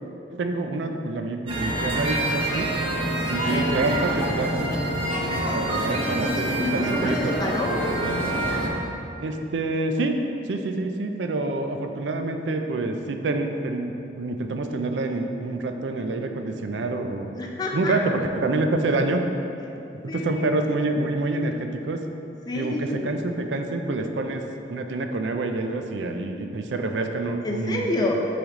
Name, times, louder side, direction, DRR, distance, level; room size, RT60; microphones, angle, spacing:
voice 1, 0.3-2.7 3.3-4.8 5.3-7.3 9.2-10.2 10.5-17.4 17.7-19.2 20.1-22.0 22.5-24.4 24.7-27.9, right 2 dB, 75° right, 5 dB, 0.4 m, -27 dB
sound 1, 1.5-8.7, right 1 dB, 30° right, 0.8 m, -26 dB
voice 2, 3.3-3.7 5.9-7.9 17.3-18.0 20.1-20.6 22.5-23.1 27.4-28.1, left 2 dB, 25° left, 0 dB, 0.6 m, -29 dB
7.9 x 3.4 x 3.6 m, 2.7 s
head